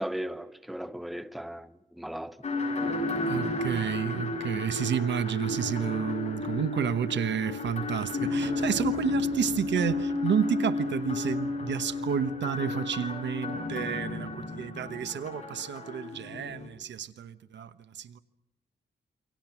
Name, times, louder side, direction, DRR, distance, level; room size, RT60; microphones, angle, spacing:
voice 1, 0.0-2.4, right 1 dB, ahead, 0.9 m, -37 dB
sound 1, 2.4-16.7, left 2 dB, 40° left, 7.5 m, -32 dB
voice 2, 3.3-18.2, right 8 dB, 80° right, 1.2 m, -31 dB
28.5 x 24.5 x 6.0 m
wide cardioid pair, 165°, 19 cm